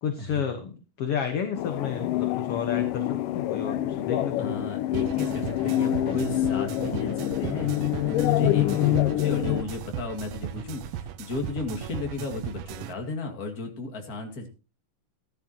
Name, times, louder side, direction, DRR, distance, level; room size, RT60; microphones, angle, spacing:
voice 1, 0.0-4.6 8.6-9.2, left 7 dB, 55° left, 6 dB, 1.9 m, -31 dB
sound 1, 1.5-9.6, left 14 dB, 85° left, 2.4 m, -26 dB
voice 2, 4.4-14.5, left 2 dB, 30° left, 4 dB, 2.4 m, -34 dB
sound 2, 4.9-12.9, right 10 dB, 75° right, 1.6 m, -37 dB
14.5 x 12.0 x 2.9 m, 0.31 s
omnidirectional pair, 3.7 m